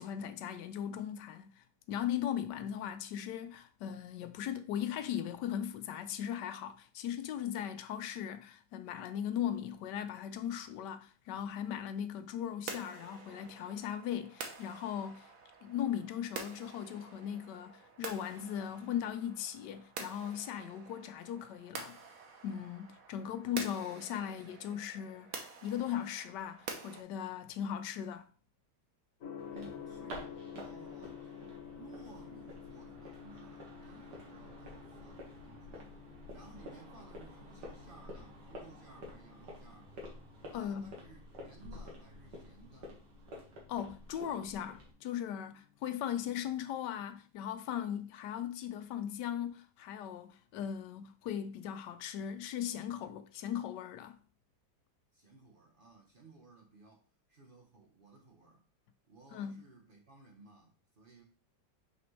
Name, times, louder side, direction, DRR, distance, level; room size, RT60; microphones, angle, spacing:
voice 1, 0.0-15.3 15.6-22.0 22.4-28.3 40.5-40.9 43.7-54.2 59.3-59.6, left 10 dB, 80° left, 1.2 m, -38 dB
sound 1, 12.7-27.0, right 5 dB, 55° right, 1.3 m, -48 dB
Gong, 29.2-47.1, left 8 dB, 60° left, 1.2 m, -52 dB
sound 2, 29.4-44.9, equal, 75° right, 2.2 m, -50 dB
voice 2, 29.5-31.3 31.7-35.9 36.3-39.9 40.5-43.0 55.1-57.0 57.3-58.6 59.1-61.2, right 3 dB, 40° right, 0.9 m, -57 dB
5.9 x 5.1 x 3.2 m
omnidirectional pair, 1.9 m